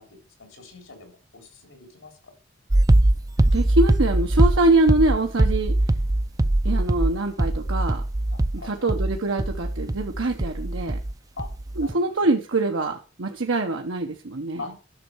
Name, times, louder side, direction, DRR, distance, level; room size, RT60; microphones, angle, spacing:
voice 1, 0.0-2.3 8.3-8.9 11.4-11.5 11.8-12.1 14.6-14.7, left 3 dB, 90° left, 3 dB, 3.7 m, -42 dB
sound 1, 2.7-11.1 11.4-11.9, right 1 dB, 20° right, 0.4 m, -21 dB
voice 2, 3.5-5.8 6.6-8.0 8.6-11.0 11.8-14.6, right 2 dB, 80° right, 2 dB, 1.0 m, -24 dB
11.0 x 6.5 x 4.6 m, 0.34 s
head